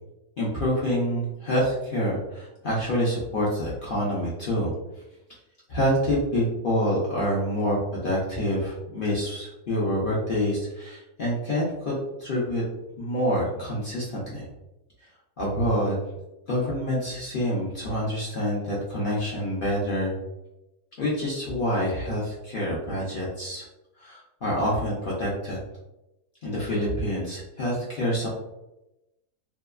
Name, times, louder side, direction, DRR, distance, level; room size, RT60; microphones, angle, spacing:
voice 1, 0.4-4.7 5.7-12.6 13.0-14.5 15.4-16.0 16.5-20.1 21.0-23.6 24.0-25.6 26.4-28.3, equal, 70° left, -6 dB, 0.5 m, -27 dB
2.7 x 2.2 x 2.3 m, 0.94 s
omnidirectional pair, 1.6 m